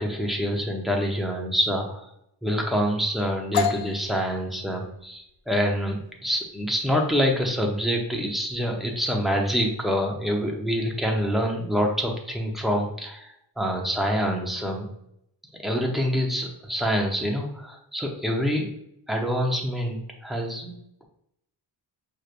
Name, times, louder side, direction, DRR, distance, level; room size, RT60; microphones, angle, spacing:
voice 1, 0.0-2.0 2.4-14.9 15.6-18.7 19.1-21.0, equal, ahead, 1 dB, 0.7 m, -26 dB
sound 1, 3.5-11.2, left 7 dB, 85° left, 0.6 m, -35 dB
6.3 x 3.2 x 2.5 m, 0.76 s
wide cardioid pair, 155°, 43 cm